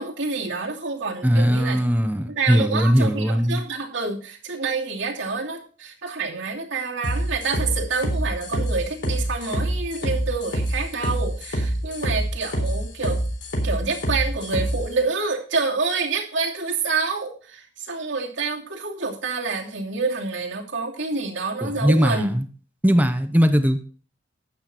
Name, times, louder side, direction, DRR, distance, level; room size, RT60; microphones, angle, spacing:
voice 1, 0.0-13.2 13.6-22.4, right 4 dB, 90° right, -1 dB, 2.8 m, -28 dB
voice 2, 1.2-3.6 21.6-22.4 22.8-23.8, equal, 10° right, 7 dB, 0.8 m, -19 dB
sound 1, 7.0-14.8, right 1 dB, 70° left, 3.9 m, -25 dB
12.0 x 8.5 x 4.4 m, 0.40 s
head